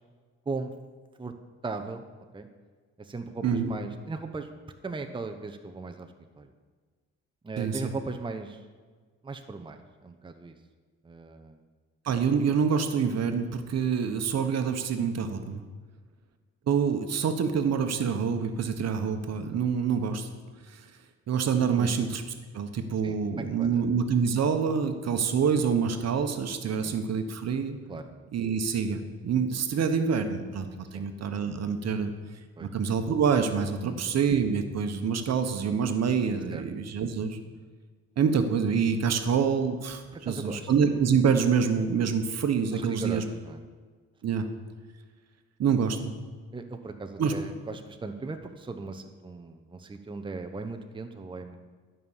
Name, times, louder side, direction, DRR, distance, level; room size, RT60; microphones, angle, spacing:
voice 1, 1.6-2.0 2.3-2.5 3.0-4.5 4.8-6.1 6.4-6.5 7.4-8.6 9.2-10.5 11.0-11.6 21.7-21.9 23.0-23.8 26.8-26.9 27.9-28.0 30.9-31.0 32.6-32.7 33.8-34.1 36.5-36.6 40.1-40.7 42.7-43.6 46.5-51.6, right 3 dB, 15° right, 5 dB, 0.8 m, -38 dB
voice 2, 7.6-7.9 12.0-15.6 16.7-20.3 20.7-20.8 21.3-22.2 22.5-27.8 28.3-32.1 32.6-37.4 38.2-43.2 44.2-44.5 45.6-46.1 47.2-47.3, right 6 dB, 60° right, 7 dB, 1.1 m, -26 dB
12.5 x 5.6 x 7.3 m, 1.5 s
cardioid pair, 90°, 30 cm